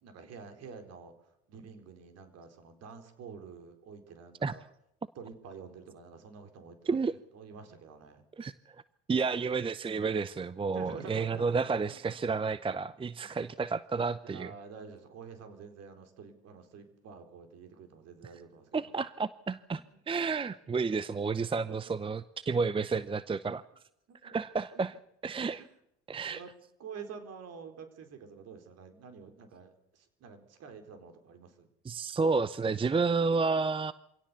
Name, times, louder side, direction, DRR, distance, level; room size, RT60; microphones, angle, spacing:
voice 1, 0.0-1.1 1.5-4.6 5.2-7.0 7.3-8.2 9.2-9.3 10.7-12.2 13.2-13.4 14.2-19.0 21.5-21.9 24.1-24.4 24.7-24.8 25.6-25.7 26.2-26.5 26.8-31.7, right 5 dB, 55° right, 7 dB, 4.3 m, -48 dB
voice 2, 9.1-14.5 18.7-23.6 24.2-25.0 25.2-25.6 26.1-26.4 31.8-33.9, right 4 dB, 15° right, 17 dB, 0.7 m, -31 dB
24.5 x 17.5 x 7.0 m, 0.80 s
hypercardioid pair, 70°, 31 cm